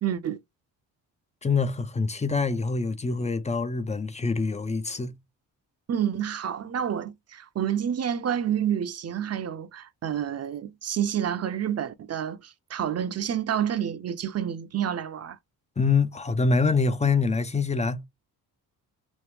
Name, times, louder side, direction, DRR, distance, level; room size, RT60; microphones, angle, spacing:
voice 1, 0.0-0.4 5.9-15.4, right 9 dB, 40° right, 0.6 m, -29 dB
voice 2, 1.4-5.1 15.8-18.1, left 4 dB, 20° left, 0.5 m, -25 dB
3.1 x 2.0 x 3.4 m
cardioid pair, 75°, 39 cm